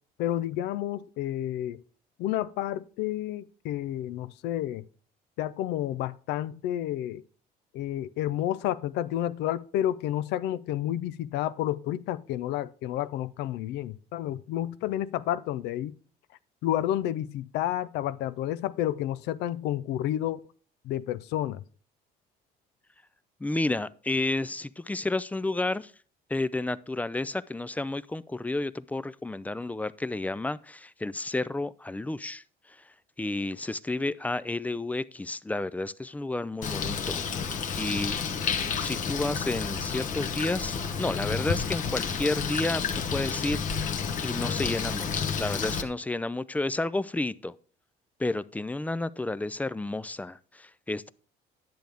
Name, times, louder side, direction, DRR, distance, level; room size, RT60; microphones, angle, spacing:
voice 1, 0.2-1.8 2.2-4.8 5.4-7.2 7.7-15.9 16.6-20.4 20.8-21.6, left 12 dB, 85° left, 0.5 m, -30 dB
voice 2, 23.4-25.9 26.3-32.8 33.2-38.2 38.8-44.0 44.2-47.5 48.2-51.1, left 2 dB, 10° left, 0.3 m, -31 dB
Bird, 36.6-45.8, left 6 dB, 50° left, 1.0 m, -30 dB
10.5 x 7.6 x 3.5 m
cardioid pair, 110°, 17 cm